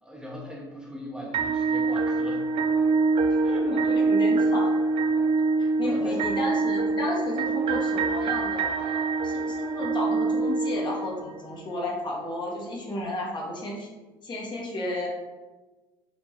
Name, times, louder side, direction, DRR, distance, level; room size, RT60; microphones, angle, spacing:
voice 1, 0.0-2.4 3.4-3.7 5.6-6.2, equal, 5° right, -2 dB, 0.8 m, -39 dB
sound 1, 1.3-11.4, right 3 dB, 55° right, 0.4 m, -25 dB
voice 2, 3.6-4.7 5.8-13.9 14.2-15.1, left 1 dB, 40° left, -2 dB, 1.1 m, -33 dB
4.3 x 2.9 x 2.9 m, 1.2 s
hypercardioid pair, 75°, 11 cm